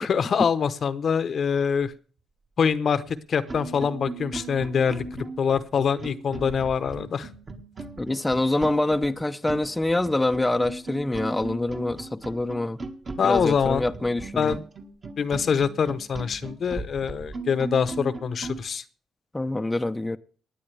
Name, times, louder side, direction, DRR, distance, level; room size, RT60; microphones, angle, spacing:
voice 1, 0.0-1.9 2.6-7.3 13.2-13.9 14.4-14.6 15.2-18.8, left 6 dB, 50° left, 0.9 m, -24 dB
sound 1, 3.0-3.1 3.5-18.6, right 3 dB, 35° right, 1.8 m, -37 dB
voice 2, 8.0-12.8 13.2-14.6 19.3-20.2, left 2 dB, 10° left, 0.7 m, -25 dB
19.0 x 9.3 x 3.4 m
cardioid pair, 90°, 0 cm